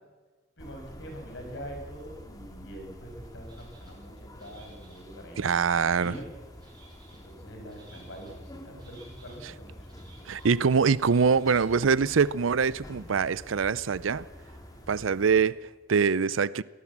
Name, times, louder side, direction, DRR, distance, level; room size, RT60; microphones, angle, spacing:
voice 1, 0.6-5.6 6.0-6.2 7.1-10.0, equal, 65° left, 6.2 m, -44 dB
sound 1, 0.6-15.5, equal, 20° left, 2.6 m, -48 dB
sound 2, 3.4-3.9 4.4-5.0 5.5-6.1 6.6-7.2 7.7-8.3 8.8-9.4 9.8-10.5 10.9-11.6 12.0-12.1, right 2 dB, 25° right, 7.4 m, -56 dB
voice 2, 5.4-6.1 10.3-14.3 14.9-16.6, right 5 dB, 90° right, 0.5 m, -24 dB
23.0 x 18.0 x 7.4 m
head